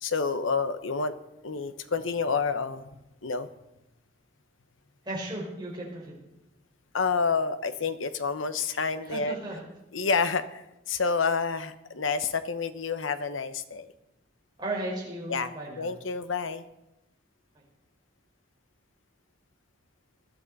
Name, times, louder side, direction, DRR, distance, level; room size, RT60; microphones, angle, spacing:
voice 1, 0.0-1.1 1.4-2.9 3.2-3.5 6.9-9.3 9.9-13.9 15.3-15.5 15.8-16.6, left 5 dB, 90° left, 11 dB, 1.0 m, -29 dB
voice 2, 5.0-6.2 9.1-9.6 14.6-15.9, right 1 dB, 20° right, -4 dB, 4.8 m, -35 dB
20.5 x 12.5 x 4.1 m, 0.92 s
head